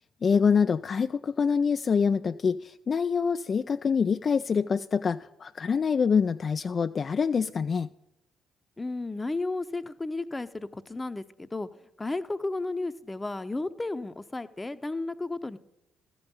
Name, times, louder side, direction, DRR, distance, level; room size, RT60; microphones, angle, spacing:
voice 1, 0.2-7.9, left 6 dB, 45° left, 9 dB, 0.3 m, -25 dB
voice 2, 8.8-11.7 12.0-15.6, left 2 dB, 20° left, 12 dB, 0.7 m, -33 dB
13.5 x 5.4 x 7.1 m, 0.85 s
hypercardioid pair, 50°, 0 cm